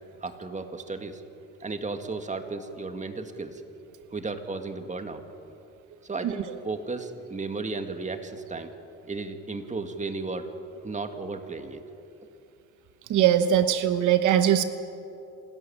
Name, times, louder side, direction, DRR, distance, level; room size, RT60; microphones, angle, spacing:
voice 1, 0.2-1.2 1.6-3.6 4.1-5.2 6.0-8.7 9.1-10.5 10.8-11.8, right 3 dB, 25° right, 7 dB, 2.0 m, -34 dB
voice 2, 13.1-14.6, right 10 dB, 80° right, 10 dB, 1.1 m, -21 dB
27.5 x 14.0 x 8.7 m, 2.7 s
cardioid pair, 90°, 30 cm